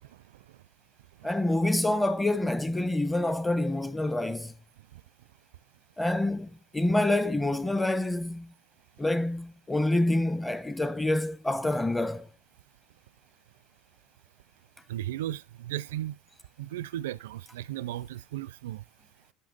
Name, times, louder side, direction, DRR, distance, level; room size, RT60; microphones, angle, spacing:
voice 1, 1.2-4.5 6.0-8.5 9.0-12.3, left 1 dB, 10° left, 1.0 m, -27 dB
voice 2, 14.9-16.2 16.6-18.8, right 13 dB, 85° right, 0.4 m, -35 dB
11.0 x 5.6 x 4.1 m
hypercardioid pair, 90°, 0 cm